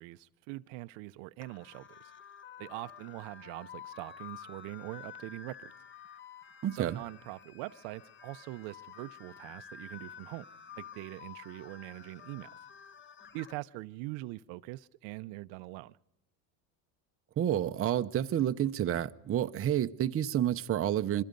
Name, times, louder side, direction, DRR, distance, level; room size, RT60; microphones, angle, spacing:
voice 1, 0.0-2.0 2.6-5.7 6.7-10.5 10.8-12.5 13.3-16.0, right 20 dB, 65° right, 0.7 m, -43 dB
sound 1, 1.4-13.5, left 7 dB, 25° left, 1.2 m, -50 dB
voice 2, 6.6-7.0 17.4-21.2, right 11 dB, 30° right, 0.7 m, -29 dB
25.5 x 23.5 x 5.3 m
supercardioid pair, 120°, 49 cm